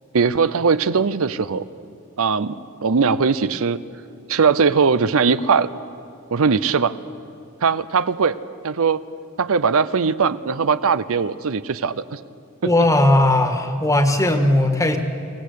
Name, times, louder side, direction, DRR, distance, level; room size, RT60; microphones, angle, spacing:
voice 1, 0.1-1.6 2.2-2.6 2.8-3.8 4.3-5.7 6.3-7.0 7.6-8.4 8.6-9.0 9.4-12.2 12.6-12.7, right 5 dB, 65° right, 14 dB, 0.6 m, -19 dB
voice 2, 12.6-15.0, left 1 dB, 15° left, 6 dB, 1.7 m, -17 dB
24.0 x 18.0 x 8.4 m, 2.6 s
head